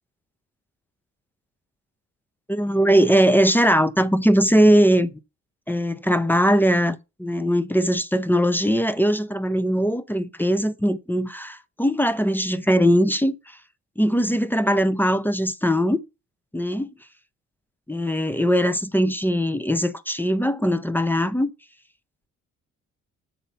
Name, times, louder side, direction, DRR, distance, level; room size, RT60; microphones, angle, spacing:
voice 1, 2.5-5.1 5.7-13.6 14.0-16.0 16.5-16.9 17.9-21.5, equal, 5° left, 0.6 m, -20 dB
6.6 x 4.2 x 5.6 m
cardioid pair, 90°, 30 cm